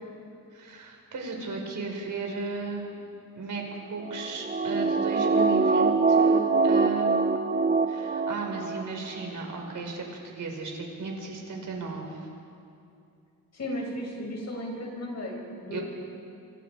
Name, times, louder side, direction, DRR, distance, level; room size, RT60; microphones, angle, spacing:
voice 1, 0.5-3.0 3.3-3.6 3.9-7.6 7.9-10.0 10.3-12.3 15.7-15.8, right 4 dB, 65° right, 1 dB, 4.9 m, -35 dB
sound 1, 4.0-8.8 9.2-9.3, right 4 dB, 25° right, 1.1 m, -24 dB
voice 2, 13.5-15.8, left 1 dB, 50° left, -1 dB, 6.5 m, -35 dB
28.0 x 26.0 x 4.8 m, 2.6 s
wide cardioid pair, 115°, 34 cm